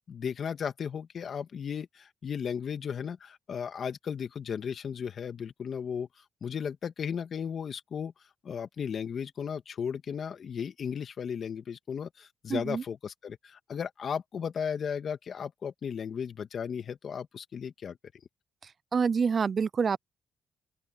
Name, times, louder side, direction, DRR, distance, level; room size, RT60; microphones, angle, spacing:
voice 1, 0.0-6.1 6.4-8.1 8.4-18.0, left 7 dB, 55° left, 1.9 m, -35 dB
voice 2, 12.5-12.8 18.9-20.0, right 5 dB, 45° right, 0.4 m, -26 dB
open air
cardioid pair, 90°, 0 cm